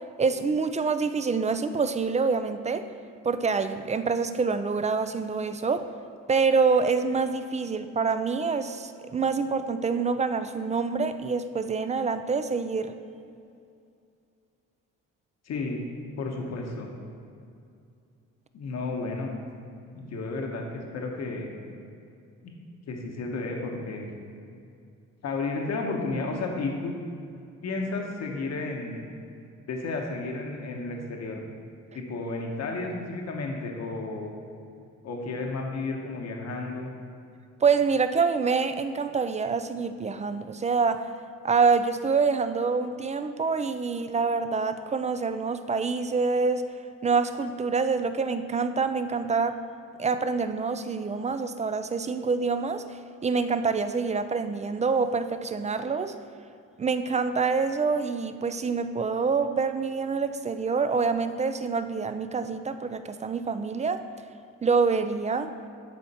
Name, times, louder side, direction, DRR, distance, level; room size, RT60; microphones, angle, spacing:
voice 1, 0.2-2.9 3.2-5.9 6.3-12.9 37.6-41.1 41.4-46.7 47.0-49.6 50.0-56.1 56.8-64.1 64.6-65.5, right 5 dB, 25° right, 10 dB, 0.4 m, -26 dB
voice 2, 15.4-15.8 16.2-16.9 18.5-19.3 19.9-21.5 22.9-24.1 25.2-26.9 27.6-29.1 29.7-31.4 31.9-34.3 35.0-36.9, left 3 dB, 60° left, 1 dB, 1.1 m, -32 dB
10.5 x 4.3 x 4.2 m, 2.5 s
cardioid pair, 90°, 30 cm